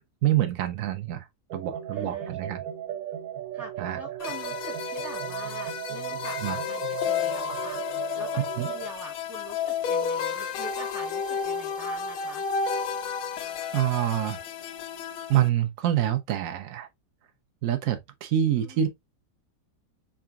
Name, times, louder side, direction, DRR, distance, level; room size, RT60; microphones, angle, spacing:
voice 1, 0.2-1.3 1.5-2.6 3.8-4.0 6.4-6.6 8.6-8.7 13.7-14.4 15.3-16.9 17.6-18.9, right 11 dB, 80° right, 0.7 m, -26 dB
sound 1, 1.5-8.9, right 11 dB, 65° right, 1.1 m, -36 dB
voice 2, 1.9-2.6 3.5-7.8 8.1-12.4 18.4-18.9, right 1 dB, 15° right, 0.6 m, -44 dB
sound 2, 4.2-15.5, left 6 dB, 75° left, 1.3 m, -32 dB
3.8 x 3.4 x 2.3 m
omnidirectional pair, 2.0 m